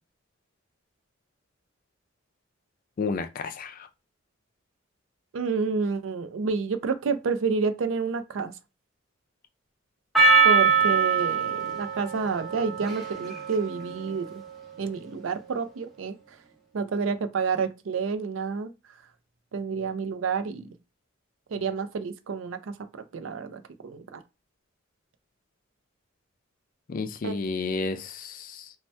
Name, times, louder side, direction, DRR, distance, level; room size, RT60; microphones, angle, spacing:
voice 1, 3.0-3.9 26.9-28.7, left 4 dB, 45° left, 0.3 m, -31 dB
voice 2, 5.3-8.5 10.4-14.3 14.8-16.1 16.7-18.7 19.5-20.7 21.5-22.7 23.1-24.2 27.2-27.3, right 5 dB, 80° right, 0.4 m, -29 dB
Percussion, 10.1-14.7, right 4 dB, ahead, 0.7 m, -24 dB
2.7 x 2.1 x 3.2 m
head